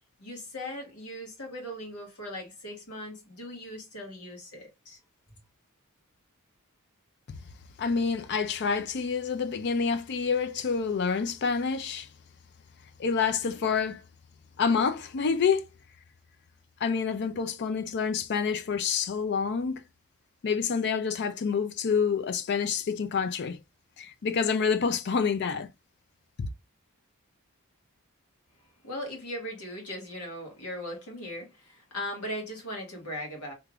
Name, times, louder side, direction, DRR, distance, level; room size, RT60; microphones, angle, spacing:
voice 1, 0.2-5.0 28.8-33.5, left 1 dB, 85° left, 1.8 m, -39 dB
voice 2, 7.8-12.1 13.0-14.0 14.6-15.7 16.8-19.8 20.4-23.6 24.0-25.7 26.4-26.5, left 5 dB, 50° left, 0.4 m, -27 dB
3.4 x 3.4 x 2.4 m
head